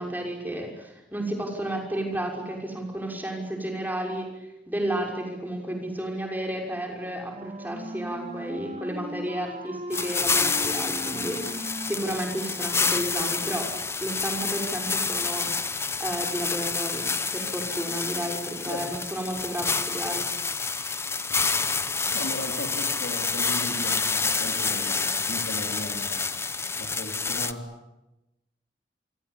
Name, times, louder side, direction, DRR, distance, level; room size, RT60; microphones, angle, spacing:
voice 1, 0.0-15.7 16.0-20.3, right 1 dB, 10° right, 2 dB, 6.1 m, -32 dB
Wind instrument woodwind instrument, 6.9-12.9, right 1 dB, 40° right, 2.6 m, -39 dB
sound 1, 9.9-27.5, left 4 dB, 15° left, 1.0 m, -28 dB
voice 2, 18.7-19.0 22.1-27.7, left 1 dB, 85° left, 0 dB, 4.2 m, -37 dB
28.5 x 24.5 x 8.4 m, 0.93 s
head